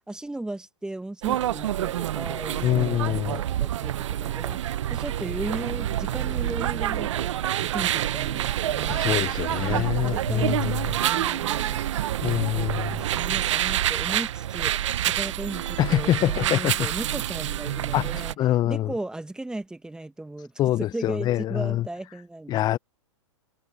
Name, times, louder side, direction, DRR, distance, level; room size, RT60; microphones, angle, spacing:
voice 1, 0.0-9.0 9.6-11.8 12.2-18.4 18.6-20.5 20.8-22.8, right 2 dB, 5° right, 1.5 m, -37 dB
sound 1, 1.2-18.3, right 12 dB, 70° right, 0.8 m, -27 dB
voice 2, 2.6-3.4 8.9-10.9 12.2-13.0 15.8-16.9 17.9-18.1 18.4-18.9 20.6-21.9 22.5-22.8, left 13 dB, 25° left, 0.7 m, -25 dB
hypercardioid pair, 120°, 16 cm